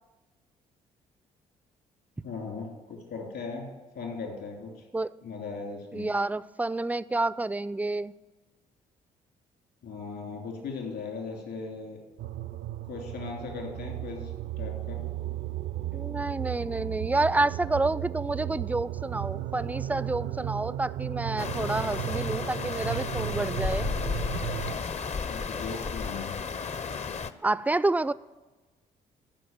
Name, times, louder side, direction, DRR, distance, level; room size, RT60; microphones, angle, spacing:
voice 1, 2.2-3.7 3.9-4.8 5.2-6.1 9.8-12.0 12.9-14.3 14.6-15.0 25.2-26.4, left 4 dB, 65° left, 1 dB, 3.0 m, -38 dB
voice 2, 5.9-8.1 15.9-23.9 27.4-28.1, right 2 dB, 10° right, 18 dB, 0.3 m, -29 dB
sound 1, 12.2-24.7, right 13 dB, 65° right, 0.5 m, -35 dB
sound 2, 21.4-27.3, left 5 dB, 35° left, 0.6 m, -33 dB
11.5 x 5.1 x 7.4 m, 1.2 s
hypercardioid pair, 50°, 19 cm